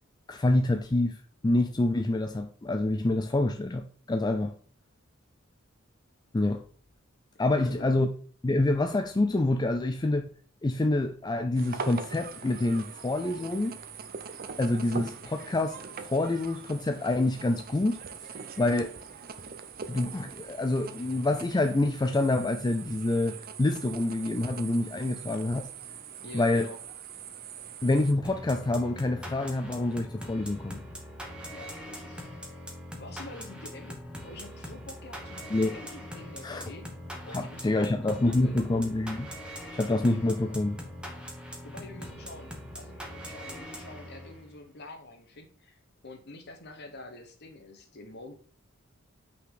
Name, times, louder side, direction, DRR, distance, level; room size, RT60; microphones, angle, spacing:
voice 1, 0.3-1.2 1.4-4.5 6.3-6.6 7.4-8.1 8.4-10.3 10.6-13.8 14.6-15.8 16.0-18.0 18.6-18.9 19.9-25.7 26.3-26.7 27.8-30.8 35.5-35.7 36.4-36.7 37.3-39.3 39.7-40.8, left 2 dB, 20° left, 0.4 m, -27 dB
voice 2, 7.5-8.1 26.2-26.8 31.5-32.3 33.0-36.9 37.2-38.6 41.6-48.3, left 2 dB, 55° left, 1.3 m, -47 dB
sound 1, 11.5-28.1, right 6 dB, 45° right, 0.6 m, -42 dB
sound 2, 28.2-44.5, equal, 5° right, 1.1 m, -42 dB
5.7 x 4.0 x 5.0 m
head